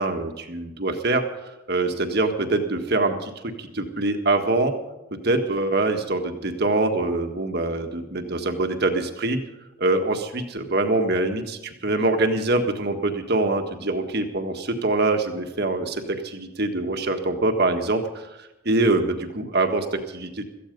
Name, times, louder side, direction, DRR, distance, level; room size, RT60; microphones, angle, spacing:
voice 1, 0.0-4.7 5.1-9.4 9.8-20.4, right 2 dB, 50° right, 5 dB, 1.7 m, -24 dB
17.0 x 14.5 x 5.3 m, 0.98 s
head